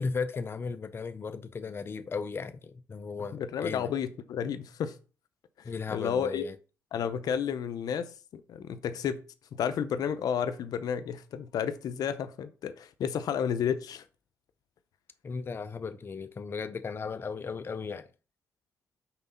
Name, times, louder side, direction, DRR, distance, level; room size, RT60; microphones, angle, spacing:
voice 1, 0.0-3.9 5.6-6.6 15.2-18.1, left 5 dB, 35° left, 0.5 m, -36 dB
voice 2, 3.3-4.9 5.6-6.4 6.9-8.1 8.3-9.2 9.5-14.0, left 8 dB, 80° left, 0.7 m, -31 dB
6.0 x 3.8 x 5.6 m
cardioid pair, 90°, 6 cm